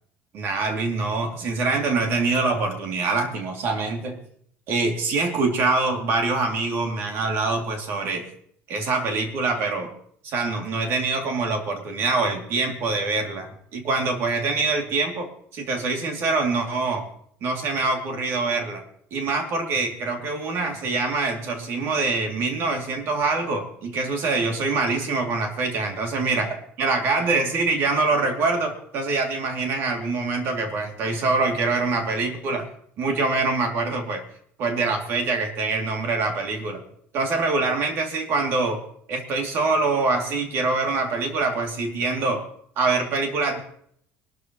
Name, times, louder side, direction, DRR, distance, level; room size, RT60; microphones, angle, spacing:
voice 1, 0.3-4.2 4.7-8.3 8.7-9.9 10.2-15.3 15.5-17.1 17.4-18.8 19.1-32.7 33.0-34.2 34.6-36.8 37.1-38.8 39.1-42.4 42.8-43.6, right 3 dB, 50° right, 3 dB, 2.6 m, -24 dB
22.5 x 13.0 x 3.1 m, 0.66 s
cardioid pair, 170°, 5 cm